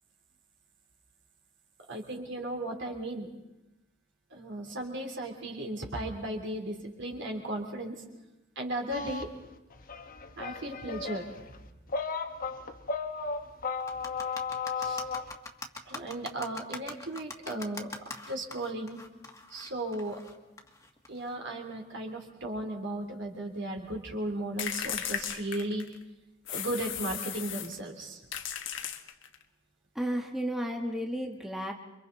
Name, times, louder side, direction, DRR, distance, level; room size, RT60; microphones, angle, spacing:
voice 1, 1.9-3.3 4.3-8.0 8.5-9.3 10.4-11.3 14.8-15.0 15.8-19.0 19.5-20.2 21.1-25.9 26.5-28.2, right 1 dB, 65° right, 2 dB, 3.3 m, -36 dB
sound 1, 8.9-15.3, left 4 dB, 45° left, 1.2 m, -35 dB
sound 2, 13.8-21.3, left 2 dB, 15° left, 1.7 m, -43 dB
sound 3, 24.6-26.0 26.5-27.8 28.3-29.4, left 9 dB, 65° left, 1.4 m, -36 dB
voice 2, 29.9-31.7, equal, ahead, 2 dB, 1.3 m, -33 dB
28.5 x 24.0 x 4.1 m, 0.96 s
head